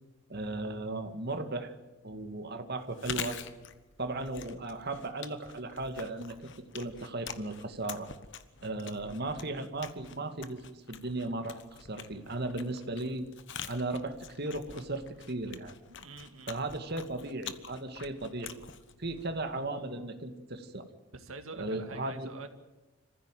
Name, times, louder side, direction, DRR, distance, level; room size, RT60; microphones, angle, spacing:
voice 1, 0.3-1.7 2.0-3.4 4.0-8.1 8.6-11.6 11.9-13.3 13.7-15.7 16.5-18.6 19.0-20.9 21.6-22.3, right 2 dB, 50° right, 7 dB, 2.1 m, -36 dB
Chewing mastication, 2.8-19.7, left 7 dB, 55° left, 1.2 m, -46 dB
voice 2, 15.9-16.6 21.1-22.5, right 3 dB, 75° right, 7 dB, 2.3 m, -46 dB
27.0 x 15.5 x 9.2 m, 1.1 s
head